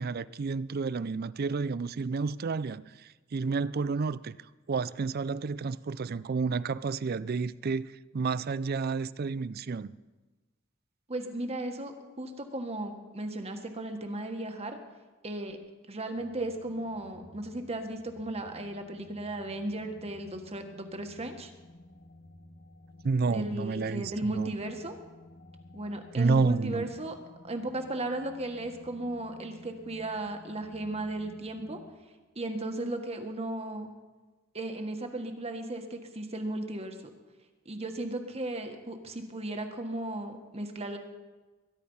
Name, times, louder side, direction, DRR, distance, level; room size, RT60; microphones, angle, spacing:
voice 1, 0.0-4.4 4.7-9.9 23.0-24.5 26.1-26.9, right 4 dB, 50° right, 0.4 m, -30 dB
voice 2, 11.1-14.8 15.2-15.6 15.9-21.5 23.3-24.9 25.7-27.2 27.4-31.8 32.3-33.9 34.5-37.0 37.6-41.0, right 1 dB, 30° right, 1.6 m, -35 dB
sound 1, 16.1-31.9, left 1 dB, 60° left, 1.9 m, -54 dB
22.5 x 10.5 x 5.6 m
head